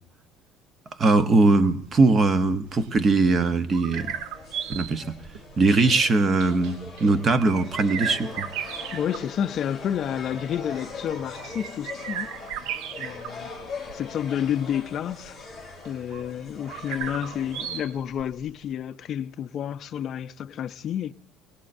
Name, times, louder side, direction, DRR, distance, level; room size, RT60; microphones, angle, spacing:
voice 1, 1.0-4.1 4.7-5.2 5.6-8.5, right 3 dB, 25° right, 0.8 m, -21 dB
sound 1, 1.5-18.7, right 8 dB, 70° right, 0.6 m, -37 dB
sound 2, 3.9-17.8, left 4 dB, 5° right, 3.5 m, -41 dB
voice 2, 8.9-12.3 13.0-13.5 13.9-15.4 15.9-21.1, left 9 dB, 35° left, 0.4 m, -30 dB
22.0 x 18.0 x 2.6 m
cardioid pair, 170°, 0 cm